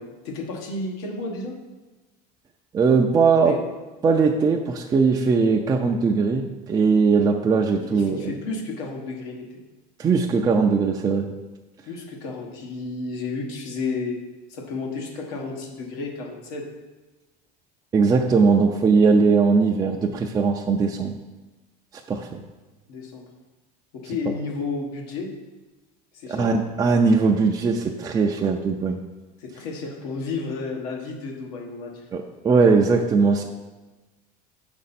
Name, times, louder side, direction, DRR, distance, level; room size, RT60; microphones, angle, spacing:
voice 1, 0.0-1.6 3.4-3.6 7.7-9.6 11.9-14.2 14.5-16.6 22.9-23.3 23.9-25.3 26.1-26.6 29.4-32.0, left 3 dB, 80° left, 1 dB, 1.3 m, -32 dB
voice 2, 2.7-3.6 4.0-8.3 10.0-11.3 17.9-21.2 22.1-22.4 26.3-29.0 32.1-33.4, right 4 dB, 20° right, 1 dB, 0.4 m, -20 dB
6.8 x 5.2 x 4.2 m, 1.2 s
cardioid pair, 130°, 20 cm